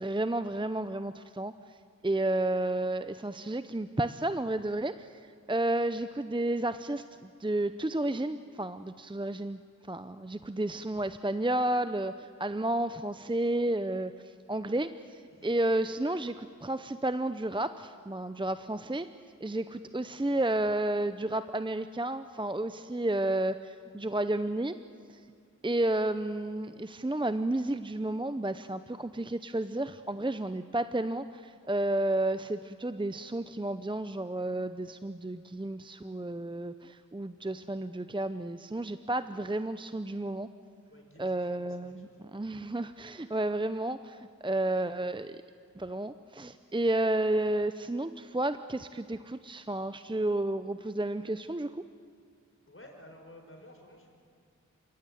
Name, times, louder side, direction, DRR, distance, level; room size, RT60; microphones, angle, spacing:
voice 1, 0.0-1.5 2.0-5.2 5.5-9.6 9.9-19.1 19.4-24.8 25.1-25.2 25.6-40.5 41.2-45.4 45.8-51.8, right 1 dB, 15° right, 11 dB, 0.7 m, -31 dB
voice 2, 40.9-42.2 52.7-54.1, left 1 dB, 45° left, 2 dB, 5.0 m, -53 dB
28.5 x 16.5 x 9.3 m, 2.3 s
wide cardioid pair, 60°, 30 cm